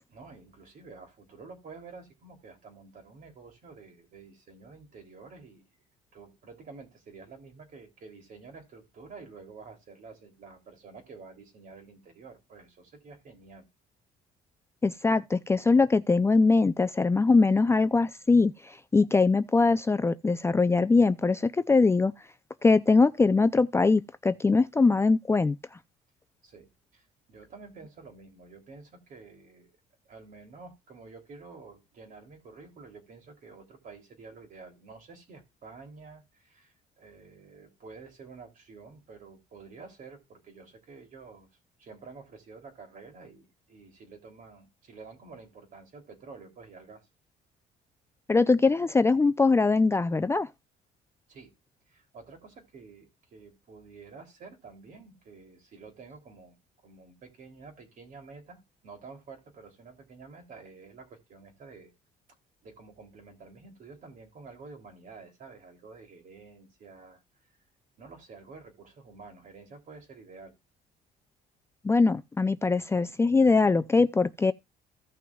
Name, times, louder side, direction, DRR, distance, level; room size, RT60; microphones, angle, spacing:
voice 1, 0.1-5.6 6.1-13.6 26.4-29.8 30.0-41.5 41.8-47.1 51.3-51.5 51.9-56.6 56.8-61.9 62.6-67.2 68.0-70.5, right 4 dB, 50° right, 3.0 m, -49 dB
voice 2, 14.8-22.1 22.6-25.6 48.3-50.5 71.8-74.5, left 3 dB, 15° left, 0.4 m, -22 dB
16.0 x 6.0 x 2.3 m
cardioid pair, 110°, 17 cm